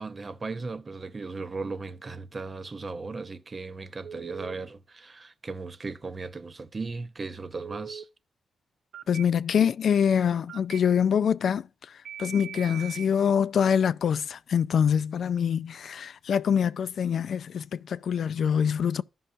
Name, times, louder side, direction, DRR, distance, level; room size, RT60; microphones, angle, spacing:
voice 1, 0.0-8.1, right 3 dB, 35° right, 0.6 m, -37 dB
Telephone, 4.0-4.5 7.5-8.0 8.9-9.2 10.5-10.8 12.1-13.1, right 8 dB, 70° right, 0.3 m, -40 dB
voice 2, 9.1-19.0, left 7 dB, 70° left, 0.3 m, -25 dB
14.0 x 5.5 x 2.5 m
cardioid pair, 90°, 0 cm